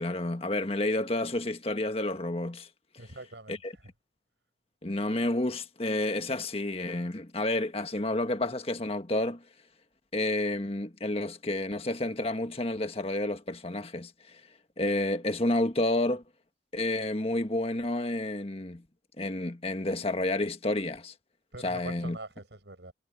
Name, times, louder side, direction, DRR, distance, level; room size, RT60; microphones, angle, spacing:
voice 1, 0.0-2.7 3.5-3.7 4.8-9.4 10.1-14.4 14.8-16.2 16.7-18.8 19.2-21.1 21.6-22.2, left 1 dB, 35° left, 1.6 m, -30 dB
voice 2, 3.0-3.6 21.5-22.9, right 2 dB, 80° right, 6.0 m, -43 dB
head